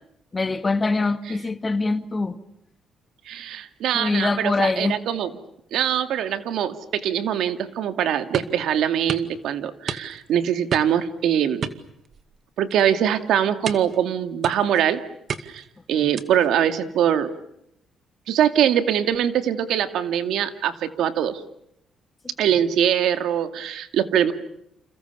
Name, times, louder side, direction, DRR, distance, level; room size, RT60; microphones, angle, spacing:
voice 1, 0.3-2.4 3.9-5.0 16.0-16.1, left 3 dB, 25° left, 2.1 m, -24 dB
voice 2, 3.3-5.3 5.7-11.7 12.6-15.0 15.4-15.6 15.9-17.3 18.3-21.4 22.4-24.3, right 9 dB, 80° right, 2.4 m, -23 dB
sound 1, 8.3-8.6 9.1-9.3 9.9-10.3 10.7-11.1 11.6-12.4 12.7-13.0 13.7-14.0 14.4-14.8 15.3-15.7 16.2-16.5, right 6 dB, 55° right, 2.1 m, -31 dB
29.5 x 28.5 x 7.0 m
cardioid pair, 95°, 0 cm